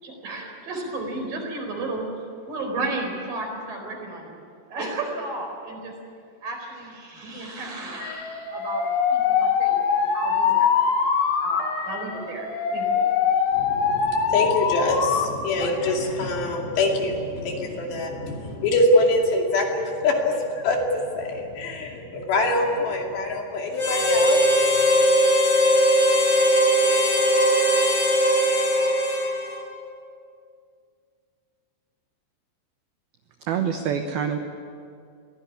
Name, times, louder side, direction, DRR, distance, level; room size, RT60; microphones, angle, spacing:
voice 1, 0.0-2.0 2.5-4.4 4.7-5.9 6.4-10.7 11.4-13.0, right 2 dB, 45° right, 2 dB, 5.8 m, -33 dB
Alarm, 8.0-15.3 15.6-16.2, left 6 dB, 85° left, 4.6 m, -23 dB
voice 2, 13.5-24.4, left 2 dB, 60° left, 1 dB, 4.4 m, -24 dB
Harmonica, 23.8-29.7, equal, 30° left, 2.5 m, -19 dB
voice 3, 33.5-34.4, right 8 dB, 75° right, 5 dB, 2.3 m, -25 dB
24.5 x 17.5 x 9.7 m, 2.3 s
omnidirectional pair, 5.9 m